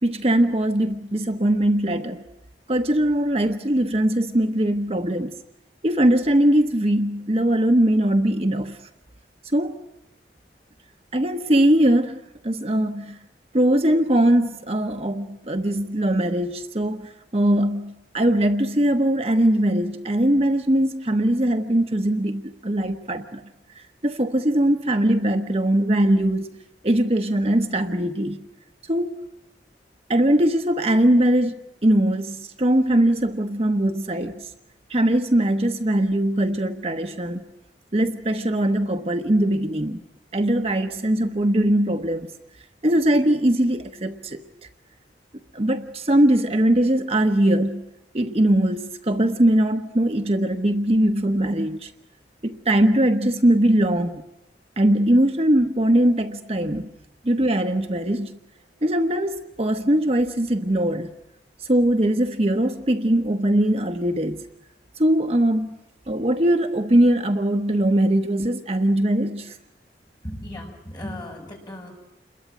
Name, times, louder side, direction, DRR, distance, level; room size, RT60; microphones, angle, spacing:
voice 1, 0.0-2.2 2.7-5.3 5.8-8.8 9.5-9.7 11.1-13.2 13.5-23.4 23.8-26.6 26.8-28.4 28.8-29.2 30.1-31.5 31.8-34.5 34.9-37.4 37.9-40.0 40.3-42.3 42.8-44.4 45.5-47.8 48.1-51.9 52.4-54.2 54.8-56.9 57.2-58.4 58.8-61.1 61.6-64.4 65.0-65.8 66.1-69.6, right 1 dB, 35° right, 6 dB, 1.0 m, -21 dB
voice 2, 70.2-71.9, left 1 dB, 25° left, 0 dB, 6.6 m, -36 dB
28.5 x 22.0 x 9.2 m, 0.91 s
head